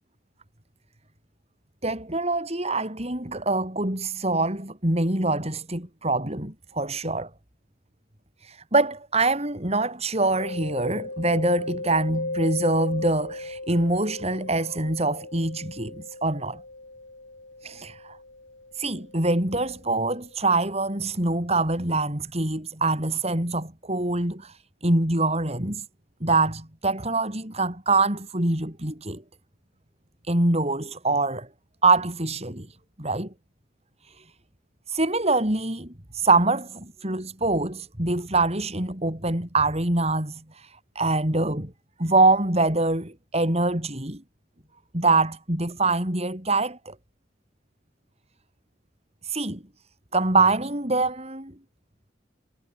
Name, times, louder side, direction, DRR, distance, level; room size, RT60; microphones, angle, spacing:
voice 1, 1.8-7.3 8.4-16.6 17.6-18.2 18.7-25.8 26.2-29.2 30.2-31.5 31.8-33.3 34.0-34.3 34.9-41.7 42.0-44.2 44.9-46.9 49.2-49.6 50.1-51.5, right 2 dB, 35° right, 4.8 m, -24 dB
Mallet percussion, 10.4-20.0, left 2 dB, 75° left, 6.5 m, -37 dB
head